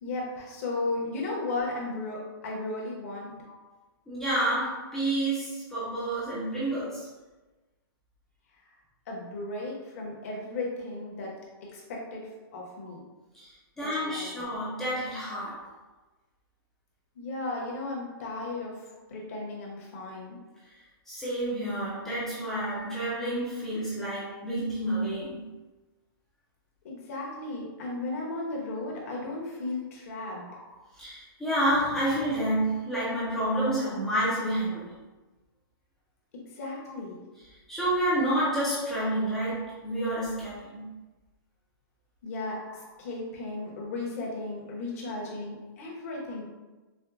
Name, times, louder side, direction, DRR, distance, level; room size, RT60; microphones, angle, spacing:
voice 1, 0.0-3.4 9.1-11.3 11.6-12.2 12.5-13.0 13.8-14.5 17.2-18.7 19.1-20.4 26.8-30.5 36.3-37.2 42.2-42.6 43.0-46.4, left 2 dB, 35° left, -3 dB, 0.8 m, -35 dB
voice 2, 4.1-7.1 12.8-12.9 13.3-15.6 21.1-25.5 30.5-30.6 30.9-34.9 37.7-40.9 42.7-42.8, right 1 dB, 5° left, -10 dB, 0.4 m, -29 dB
4.3 x 2.1 x 2.4 m, 1.2 s
hypercardioid pair, 175°, 13 cm